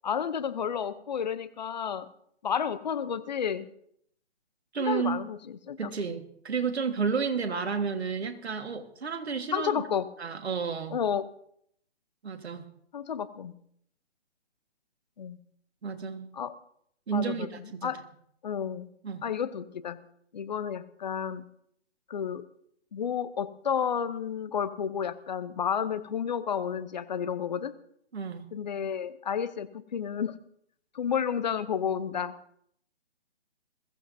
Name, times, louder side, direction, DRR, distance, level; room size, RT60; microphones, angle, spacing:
voice 1, 0.0-2.1 2.4-3.7 4.8-5.9 9.5-10.1 10.9-11.3 12.9-13.6 15.2-15.4 16.3-16.5 17.1-17.5 17.8-18.0 18.4-18.9 19.2-20.0 20.3-21.5 22.1-22.4 22.9-27.7 28.5-30.4 30.9-32.4, left 7 dB, 40° left, 14 dB, 0.7 m, -31 dB
voice 2, 4.7-5.2 5.8-9.7 10.2-11.0 12.2-12.7 15.8-16.3 17.1-17.9 19.0-19.2 28.1-28.5, right 5 dB, 65° right, 7 dB, 1.7 m, -31 dB
21.0 x 15.0 x 2.7 m, 0.68 s
figure-of-eight pair, 145°, 35 cm